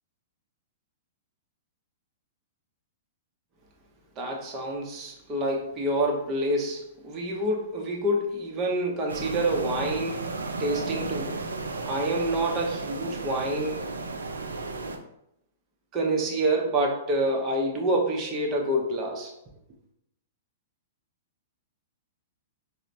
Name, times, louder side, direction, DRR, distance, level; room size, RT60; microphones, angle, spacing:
voice 1, 4.2-10.3 10.6-11.4 11.9-13.9 15.9-19.3, right 1 dB, 30° right, 0 dB, 0.7 m, -27 dB
sound 1, 9.1-15.0, right 3 dB, 85° right, 0.3 m, -34 dB
4.0 x 2.1 x 2.5 m, 0.80 s
hypercardioid pair, 115°, 0 cm